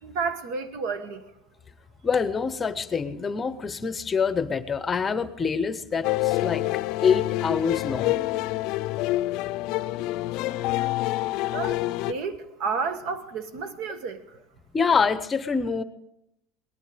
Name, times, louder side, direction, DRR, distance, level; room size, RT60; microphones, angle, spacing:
voice 1, 0.0-1.3 11.5-11.8 12.1-14.4, right 5 dB, 65° right, 1.4 m, -31 dB
voice 2, 2.0-6.7 7.0-8.2 14.7-15.8, left 5 dB, 20° left, 0.8 m, -25 dB
sound 1, 6.0-12.1, left 17 dB, 65° left, 0.5 m, -27 dB
18.5 x 12.0 x 5.0 m
supercardioid pair, 135°, 0 cm